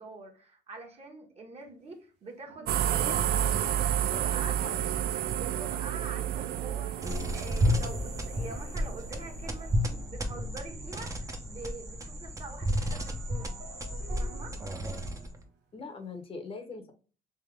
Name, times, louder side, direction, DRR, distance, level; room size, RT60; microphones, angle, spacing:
voice 1, 0.0-3.4 4.1-4.6 5.3-13.6 14.2-14.6, right 3 dB, 40° right, 2 dB, 1.3 m, -45 dB
sound 1, 1.6-1.7 2.5-12.0 12.2-16.2, right 4 dB, 85° right, 1.2 m, -53 dB
sound 2, 2.7-9.5, right 10 dB, 65° right, 0.4 m, -31 dB
voice 2, 3.1-4.8 15.7-16.9, left 4 dB, 35° left, 6 dB, 0.8 m, -43 dB
sound 3, 7.0-15.4, equal, 20° right, 0.7 m, -32 dB
3.4 x 2.8 x 3.4 m, 0.37 s
cardioid pair, 110°, 17 cm